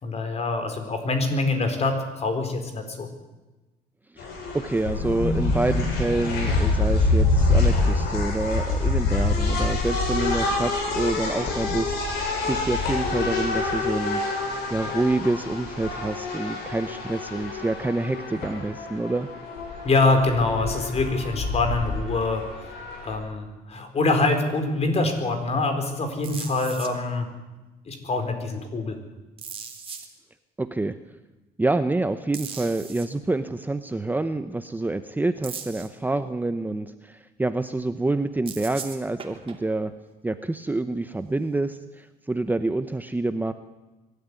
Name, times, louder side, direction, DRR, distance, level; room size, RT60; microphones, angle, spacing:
voice 1, 0.0-3.1 19.8-22.7 23.0-27.3 27.9-29.0, left 3 dB, 40° left, 6 dB, 4.4 m, -25 dB
voice 2, 4.1-14.2 14.7-19.3 30.6-31.0 31.6-39.9 40.2-43.5, right 2 dB, 10° right, 10 dB, 0.9 m, -27 dB
sound 1, 4.2-23.2, left 3 dB, 80° left, 7.3 m, -26 dB
sound 2, 26.2-26.9 29.4-30.1 32.3-33.1 35.4-35.9 38.5-39.6 42.0-42.1, right 6 dB, 35° right, 3.1 m, -38 dB
23.0 x 13.0 x 9.9 m, 1.1 s
cardioid pair, 110°, 17 cm